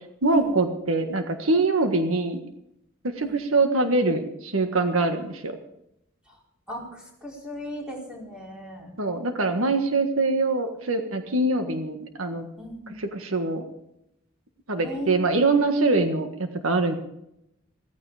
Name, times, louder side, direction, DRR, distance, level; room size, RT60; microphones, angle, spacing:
voice 1, 0.2-2.4 3.0-5.6 9.0-12.5 13.0-13.6 14.7-17.0, right 3 dB, 90° right, 7 dB, 1.6 m, -24 dB
voice 2, 6.7-9.0 12.6-13.1 14.8-15.6, equal, 5° right, -2 dB, 4.7 m, -37 dB
16.0 x 14.5 x 4.9 m, 0.81 s
head